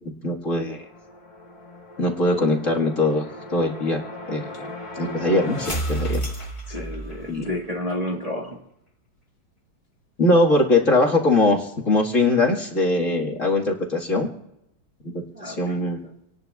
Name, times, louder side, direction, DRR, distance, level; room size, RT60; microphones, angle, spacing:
voice 1, 0.0-0.8 2.0-3.3 3.5-6.2 7.3-7.5 10.2-14.3 15.5-16.0, left 2 dB, 40° left, -2 dB, 2.0 m, -21 dB
sound 1, 0.8-7.6, right 1 dB, 20° left, 1.0 m, -33 dB
voice 2, 6.7-8.6 15.3-15.9, left 1 dB, 20° right, -2 dB, 1.4 m, -31 dB
27.0 x 18.5 x 2.3 m, 0.83 s
omnidirectional pair, 2.1 m